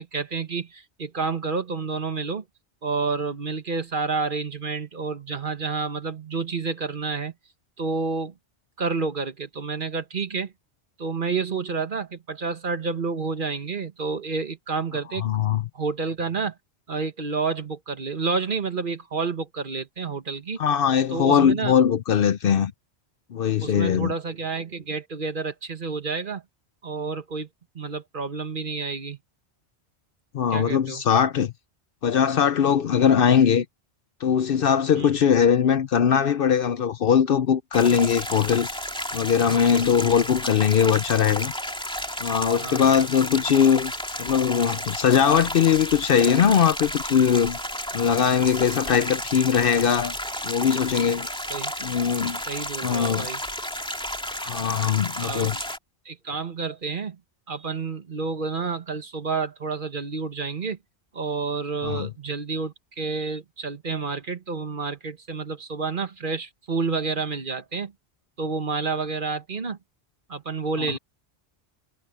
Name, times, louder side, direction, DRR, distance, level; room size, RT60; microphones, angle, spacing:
voice 1, 0.0-2.4 2.8-7.3 7.8-8.3 8.8-10.5 11.0-15.3 15.7-16.6 16.9-20.6 21.1-21.7 23.6-26.4 26.8-27.5 27.7-29.2 30.5-31.0 35.0-35.3 40.0-40.1 42.6-42.8 51.5-51.7 52.5-53.4 55.2-55.6 56.0-57.2 57.5-60.8 61.1-67.9 68.4-69.8 70.3-71.0, right 4 dB, 50° right, 1.5 m, -29 dB
voice 2, 15.2-15.6 20.6-22.7 23.3-24.1 30.3-31.5 32.0-33.7 34.2-38.7 39.1-41.5 42.2-43.9 44.2-47.6 47.9-50.1 50.4-51.3 51.8-52.4 52.8-53.3 54.4-55.6 61.8-62.1, left 8 dB, 60° left, 0.8 m, -21 dB
sound 1, 37.7-55.8, equal, 5° left, 2.6 m, -32 dB
omnidirectional pair, 1.1 m